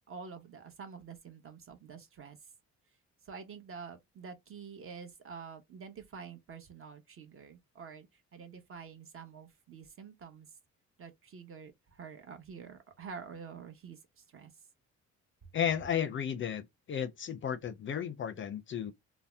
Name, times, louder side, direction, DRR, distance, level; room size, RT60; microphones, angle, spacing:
voice 1, 0.1-2.4 3.2-10.5 11.0-14.5, right 6 dB, 45° right, 0.8 m, -48 dB
voice 2, 15.5-18.9, left 8 dB, 40° left, 0.4 m, -34 dB
2.7 x 2.0 x 3.2 m
cardioid pair, 90°, 30 cm